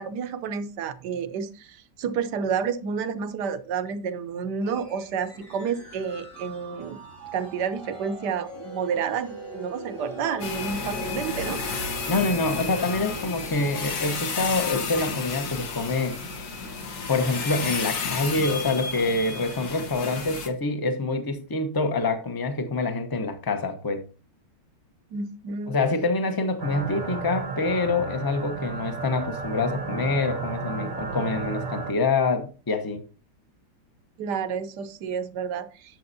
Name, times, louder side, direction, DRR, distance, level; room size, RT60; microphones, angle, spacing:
voice 1, 0.0-7.0 7.3-11.6 25.1-25.8 34.2-35.7, right 6 dB, 70° right, 1.3 m, -30 dB
sound 1, 4.6-16.9, left 1 dB, 90° left, 6.5 m, -42 dB
sound 2, 10.4-20.5, left 4 dB, 60° left, 1.7 m, -32 dB
voice 2, 12.1-16.2 17.1-24.0 25.7-33.1, left 3 dB, 15° left, 0.7 m, -26 dB
sound 3, 26.6-31.9, right 4 dB, 55° right, 1.2 m, -33 dB
10.5 x 7.5 x 2.7 m
omnidirectional pair, 1.9 m